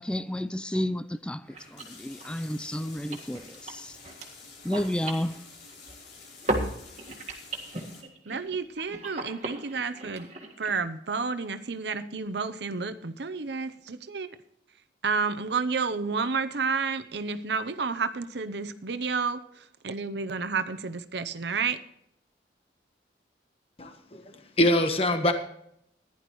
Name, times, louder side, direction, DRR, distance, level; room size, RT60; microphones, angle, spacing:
voice 1, 0.0-4.0 4.6-5.4, left 1 dB, 5° left, 0.3 m, -31 dB
sound 1, 0.8-0.9 1.1-1.2 1.4-6.1 6.4-10.8, right 2 dB, 40° right, 1.8 m, -37 dB
sound 2, 1.5-8.0, left 4 dB, 70° left, 3.8 m, -49 dB
voice 2, 8.3-10.3 10.6-14.4 15.0-21.8, right 5 dB, 70° right, 0.8 m, -30 dB
voice 3, 23.8-25.3, left 1 dB, 30° left, 1.3 m, -24 dB
15.5 x 11.0 x 3.1 m
head